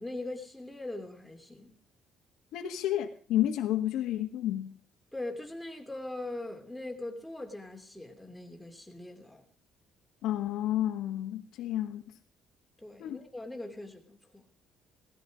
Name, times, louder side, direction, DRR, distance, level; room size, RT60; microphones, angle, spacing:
voice 1, 0.0-1.7 5.1-9.5 12.8-14.4, left 2 dB, 5° left, 2.8 m, -41 dB
voice 2, 2.5-4.7 10.2-12.0 13.0-13.2, left 12 dB, 85° left, 1.6 m, -30 dB
18.0 x 14.5 x 5.2 m
cardioid pair, 145°, 0 cm